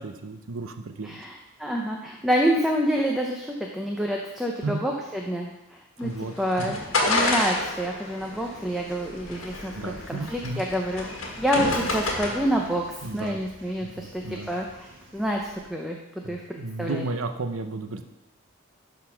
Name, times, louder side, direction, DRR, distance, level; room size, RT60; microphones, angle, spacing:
voice 1, 0.0-1.2 4.6-4.8 6.0-6.8 9.7-10.6 13.0-13.4 13.8-14.5 16.2-18.0, right 3 dB, 80° right, 7 dB, 0.7 m, -33 dB
voice 2, 1.0-6.1 6.4-6.8 7.0-14.9 15.1-15.4 15.7-17.0, equal, ahead, -1 dB, 0.6 m, -28 dB
sound 1, 6.0-12.6, left 2 dB, 75° left, 1.5 m, -29 dB
sound 2, 7.3-15.7, right 1 dB, 65° right, 1.6 m, -48 dB
11.5 x 4.2 x 5.7 m, 0.95 s
head